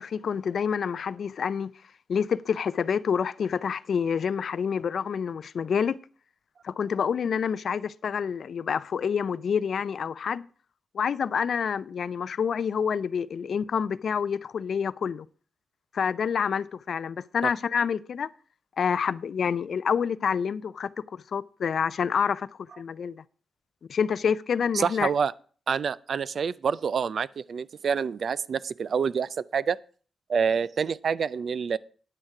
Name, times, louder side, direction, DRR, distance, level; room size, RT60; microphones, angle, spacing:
voice 1, 0.0-1.7 2.1-6.0 6.6-10.5 10.9-15.3 15.9-18.3 18.8-22.5 22.8-23.2 23.9-25.1, left 7 dB, 70° left, 0.4 m, -27 dB
voice 2, 24.7-25.3 25.7-29.8 30.3-31.8, right 6 dB, 65° right, 0.4 m, -27 dB
9.6 x 8.9 x 4.8 m
cardioid pair, 90°, 0 cm